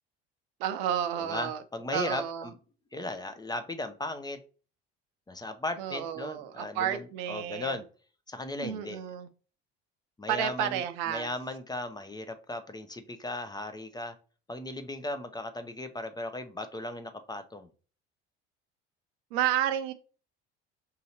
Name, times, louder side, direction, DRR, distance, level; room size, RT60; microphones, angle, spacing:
voice 1, 0.6-1.6 1.9-2.5 5.8-7.8 8.6-9.3 10.3-11.3 19.3-19.9, right 10 dB, 75° right, 10 dB, 0.6 m, -31 dB
voice 2, 1.2-2.5 2.9-4.4 5.3-7.8 8.3-9.0 10.2-10.8 11.1-14.1 14.5-17.7, left 2 dB, 15° left, 8 dB, 0.5 m, -37 dB
5.4 x 2.8 x 2.8 m, 0.37 s
hypercardioid pair, 65°, 31 cm